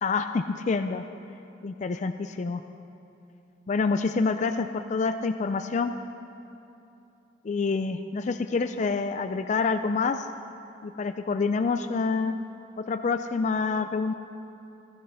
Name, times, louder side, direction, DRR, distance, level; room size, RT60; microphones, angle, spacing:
voice 1, 0.0-1.0 1.6-2.6 3.7-5.9 7.4-10.3 10.8-12.3 12.9-14.1, left 4 dB, 40° left, 8 dB, 0.4 m, -27 dB
14.5 x 12.0 x 5.5 m, 2.8 s
head